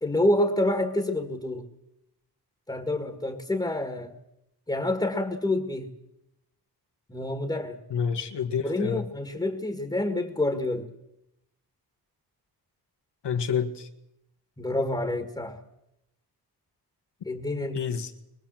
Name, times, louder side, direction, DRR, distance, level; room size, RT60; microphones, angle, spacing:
voice 1, 0.0-1.7 2.7-4.1 4.7-5.9 7.1-7.8 8.6-10.9 14.6-15.6 17.2-17.8, left 1 dB, 10° left, 6 dB, 1.8 m, -27 dB
voice 2, 7.9-9.1 13.2-13.9 17.7-18.1, left 7 dB, 85° left, 4 dB, 1.8 m, -28 dB
23.0 x 22.5 x 7.5 m, 0.85 s
wide cardioid pair, 160°, 40 cm